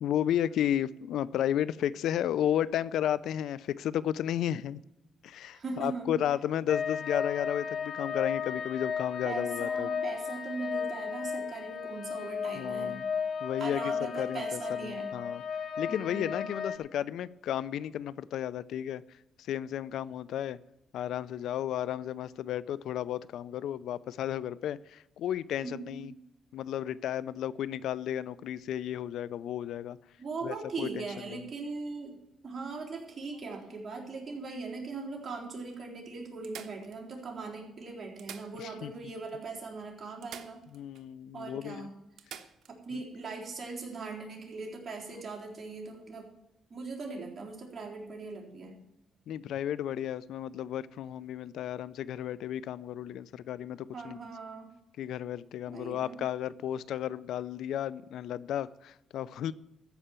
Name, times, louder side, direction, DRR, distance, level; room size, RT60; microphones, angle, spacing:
voice 1, 0.0-4.8 5.2-9.9 12.6-13.0 13.4-15.4 15.8-19.0 19.4-20.6 20.9-26.1 26.5-30.0 30.4-31.5 38.6-38.9 40.7-41.9 49.3-54.2 55.0-59.5, left 11 dB, 80° left, 19 dB, 0.4 m, -33 dB
voice 2, 5.5-6.2 9.2-13.0 13.6-15.1 15.9-16.3 25.6-26.0 30.2-32.2 32.4-40.6 41.3-41.9 42.7-46.3 46.7-48.8 53.9-54.7 55.7-56.2, right 4 dB, 35° right, -1 dB, 4.0 m, -40 dB
sound 1, 6.7-16.8, left 6 dB, 60° left, 1.4 m, -34 dB
sound 2, 32.9-34.5 35.2-35.3 35.6-35.7 36.4-37.4 38.0-39.0 39.3-39.4 40.2-41.1 41.4-41.5 42.2-42.8 44.7-44.9, right 9 dB, 70° right, 1.1 m, -50 dB
14.0 x 5.5 x 8.9 m, 0.91 s
cardioid pair, 90°, 0 cm